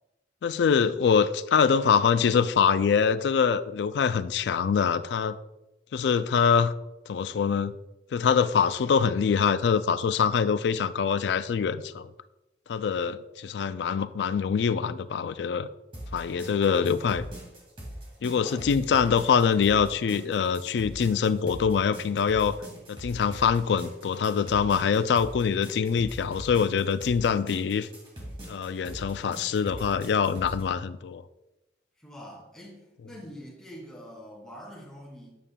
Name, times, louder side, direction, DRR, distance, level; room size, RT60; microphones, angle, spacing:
voice 1, 0.4-5.4 5.9-6.7 7.1-7.7 8.1-12.1 12.7-15.7 16.1-17.2 18.2-22.6 22.9-27.9 28.5-31.2, left 6 dB, 80° left, 14 dB, 0.3 m, -24 dB
sound 1, 15.9-30.6, equal, 30° right, 2.2 m, -42 dB
voice 2, 16.6-17.0 18.3-18.6 32.0-35.3, equal, 5° left, -6 dB, 2.5 m, -45 dB
8.6 x 7.2 x 2.3 m, 0.96 s
head